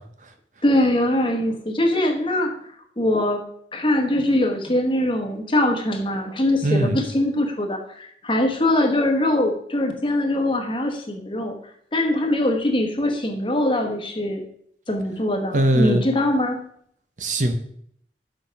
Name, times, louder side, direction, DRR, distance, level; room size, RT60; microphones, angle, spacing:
voice 1, 0.6-2.5 3.0-3.4 3.7-11.6 11.9-14.4 14.9-16.6, left 1 dB, 30° left, 3 dB, 1.1 m, -22 dB
voice 2, 6.6-7.0 15.5-16.0 17.2-17.5, right 1 dB, 45° right, 7 dB, 0.8 m, -20 dB
6.5 x 5.8 x 5.2 m, 0.66 s
head